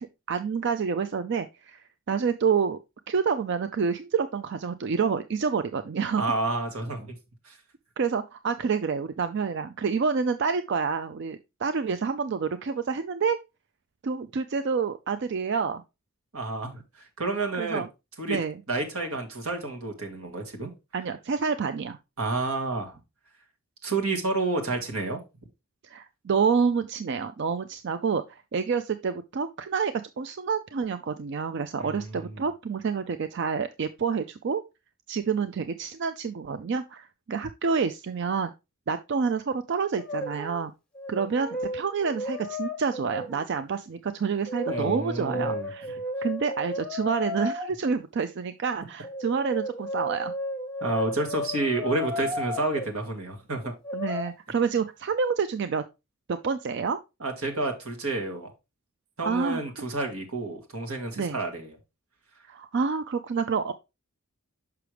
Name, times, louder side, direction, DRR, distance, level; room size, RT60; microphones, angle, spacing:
voice 1, 0.0-2.8 3.1-6.2 8.0-13.4 14.0-15.8 17.6-17.9 18.3-18.6 20.9-22.0 25.8-34.6 35.1-38.5 38.9-40.7 41.1-50.3 53.9-55.8 56.3-57.0 59.2-59.6 61.2-61.4 62.5-63.7, right 5 dB, 55° right, 10 dB, 0.4 m, -28 dB
voice 2, 6.2-7.2 7.5-7.6 16.3-16.8 17.2-17.8 18.2-18.4 18.7-20.7 22.2-23.0 23.8-25.2 31.8-32.3 44.7-45.7 50.8-53.7 57.2-58.5 59.2-61.7, right 2 dB, 85° right, 3 dB, 1.8 m, -30 dB
Brass instrument, 40.0-40.7 40.9-43.5 44.5-47.7 49.0-52.9 53.8-54.3, left 1 dB, 5° left, 1.1 m, -34 dB
6.3 x 5.8 x 3.3 m, 0.25 s
head